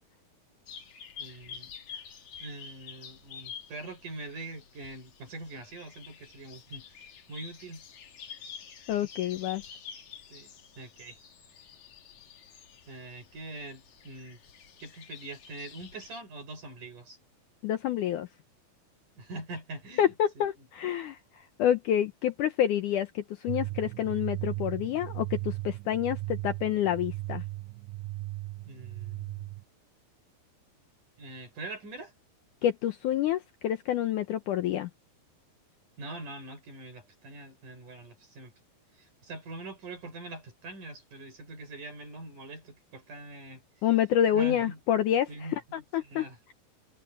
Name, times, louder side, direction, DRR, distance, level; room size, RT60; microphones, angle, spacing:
sound 1, 0.7-16.2, left 7 dB, 55° left, 3.2 m, -48 dB
voice 1, 1.2-1.8 2.4-7.8 10.3-11.2 12.9-14.4 14.8-17.2 19.2-20.7 28.6-29.5 31.2-32.1 36.0-38.5 39.0-43.6 44.3-44.8 45.3-45.6 46.0-46.4, right 2 dB, 55° right, 7.5 m, -43 dB
voice 2, 8.9-9.6 17.6-18.3 20.0-21.2 21.6-27.4 32.6-34.9 43.8-45.3 45.7-46.2, left 10 dB, 75° left, 2.0 m, -28 dB
sound 2, 23.5-29.6, right 20 dB, 85° right, 1.9 m, -37 dB
omnidirectional pair, 4.4 m